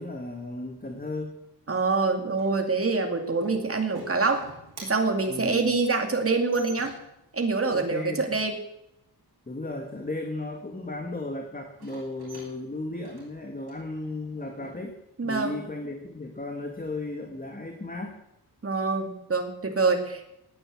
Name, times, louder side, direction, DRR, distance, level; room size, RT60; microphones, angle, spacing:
voice 1, 0.0-1.4 5.3-5.6 7.7-8.4 9.5-14.9 15.2-18.2, left 2 dB, 20° left, 3 dB, 1.8 m, -35 dB
voice 2, 1.7-4.5 4.8-6.9 7.3-8.6 15.2-15.6 18.6-20.3, right 4 dB, 35° right, 4 dB, 2.4 m, -25 dB
sound 1, 2.3-7.3 11.7-14.7, right 3 dB, 70° right, 7.4 m, -49 dB
17.5 x 9.6 x 7.7 m, 0.85 s
wide cardioid pair, 150°, 40 cm